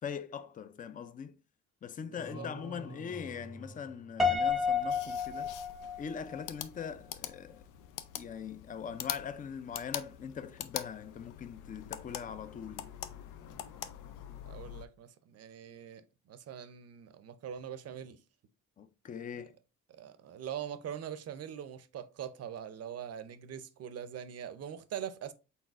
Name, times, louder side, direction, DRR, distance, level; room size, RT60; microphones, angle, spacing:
voice 1, 0.0-1.4 1.8-5.5 6.0-7.6 8.2-12.9 18.8-19.5, left 7 dB, 30° left, 0.4 m, -41 dB
voice 2, 2.0-2.8 14.4-18.2 19.9-25.3, right 9 dB, 55° right, 0.6 m, -43 dB
sound 1, 2.2-4.7, equal, 50° left, 1.8 m, -48 dB
Piano, 4.2-6.4, left 5 dB, ahead, 0.7 m, -30 dB
sound 2, 4.5-14.9, left 11 dB, 85° left, 0.5 m, -44 dB
4.1 x 4.0 x 2.4 m
cardioid pair, 90°, 30 cm